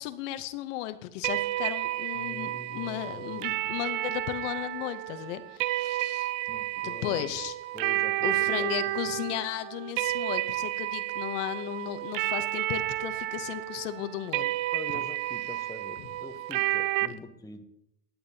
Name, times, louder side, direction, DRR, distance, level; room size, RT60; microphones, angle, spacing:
voice 1, 0.0-6.3 6.8-7.6 8.2-14.5, left 13 dB, 75° left, 11 dB, 0.8 m, -35 dB
sound 1, 1.2-17.1, right 15 dB, 65° right, 0.6 m, -31 dB
voice 2, 2.1-3.8 6.5-7.3 7.7-9.1 14.7-17.6, left 2 dB, 10° left, 6 dB, 0.9 m, -44 dB
15.5 x 8.8 x 2.8 m, 0.83 s
supercardioid pair, 110°, 37 cm